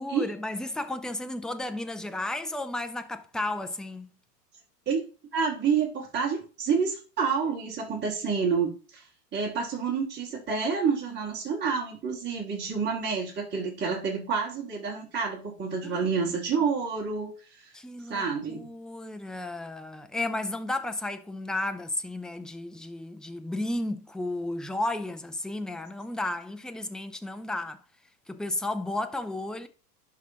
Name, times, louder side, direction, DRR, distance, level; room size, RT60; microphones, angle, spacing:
voice 1, 0.0-4.1 15.8-16.4 17.7-27.8 28.3-29.7, left 2 dB, ahead, 0.5 m, -33 dB
voice 2, 5.3-9.1 9.3-17.7 18.1-18.7, right 5 dB, 20° right, 2.8 m, -28 dB
11.5 x 3.9 x 4.0 m
hypercardioid pair, 105°, 50 cm